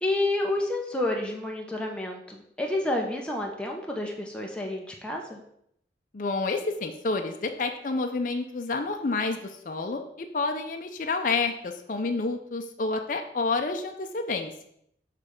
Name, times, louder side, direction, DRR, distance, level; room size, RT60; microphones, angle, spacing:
voice 1, 0.0-5.4, left 2 dB, 5° left, 0 dB, 0.6 m, -29 dB
voice 2, 6.1-14.7, left 3 dB, 45° left, 5 dB, 0.5 m, -29 dB
6.7 x 3.2 x 5.2 m, 0.73 s
head